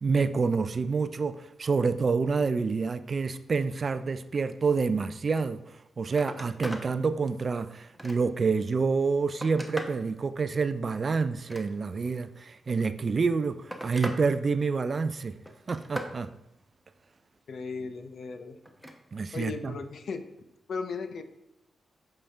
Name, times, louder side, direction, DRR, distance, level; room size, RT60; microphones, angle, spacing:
voice 1, 0.0-5.6 6.0-15.3 15.7-16.3 19.1-19.7, right 4 dB, 45° right, 0.3 m, -28 dB
Telephone, 5.7-5.8 6.1-6.9 7.4-8.5 9.0-10.0 11.3-12.1 13.1-14.2 14.6-15.0 15.5-16.2 18.6-19.0 20.4-20.5, equal, ahead, 0.8 m, -40 dB
voice 2, 17.5-18.6 19.3-20.2 20.7-21.2, left 4 dB, 65° left, 0.6 m, -36 dB
7.5 x 5.1 x 3.4 m
cardioid pair, 90°, 0 cm